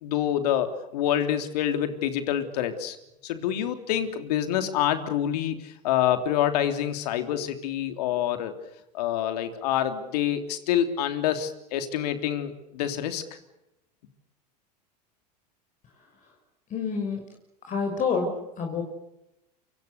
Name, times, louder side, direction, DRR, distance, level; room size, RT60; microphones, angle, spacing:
voice 1, 0.0-3.0 3.2-8.5 8.9-13.2, left 10 dB, 70° left, 8 dB, 3.4 m, -27 dB
voice 2, 16.7-17.2 17.7-18.8, left 5 dB, 35° left, 2 dB, 5.8 m, -28 dB
28.0 x 25.5 x 6.9 m, 0.89 s
hypercardioid pair, 85°, 21 cm